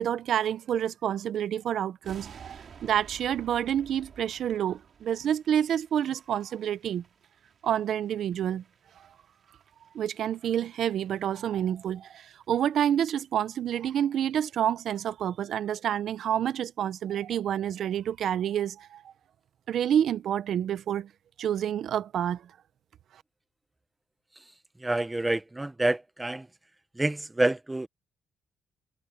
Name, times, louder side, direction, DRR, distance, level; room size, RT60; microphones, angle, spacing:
voice 1, 0.0-7.0 7.6-8.6 9.9-19.0 19.7-21.1 21.4-22.4, right 10 dB, 70° right, 0.8 m, -28 dB
sound 1, 2.0-11.2 11.5-11.7 12.1-12.2 12.4-12.5 12.8-13.1 13.4-13.5, right 6 dB, 50° right, 3.1 m, -53 dB
voice 2, 24.8-26.5 26.9-27.9, right 2 dB, 15° right, 0.9 m, -27 dB
cardioid pair, 90°, 0 cm